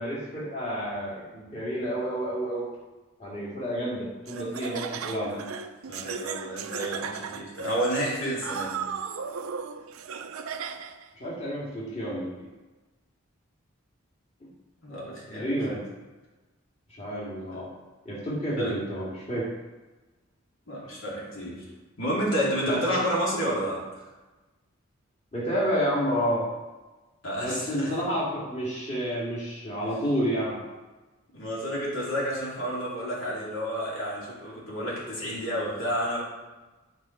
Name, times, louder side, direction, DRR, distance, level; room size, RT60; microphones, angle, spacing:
voice 1, 0.0-2.7 3.2-5.5 11.2-12.5 15.3-15.8 16.9-17.7 18.0-19.4 22.7-22.8 25.3-26.5 27.4-30.6, equal, 30° left, -6 dB, 2.2 m, -30 dB
Laughter, 4.3-11.1, right 6 dB, 85° right, 0.5 m, -36 dB
voice 2, 5.9-8.9 14.8-15.8 17.5-17.6 18.6-18.8 20.7-21.6 22.0-24.0 27.2-27.9 31.3-36.2, equal, 70° left, -5 dB, 2.6 m, -30 dB
9.9 x 4.9 x 4.5 m, 1.2 s
head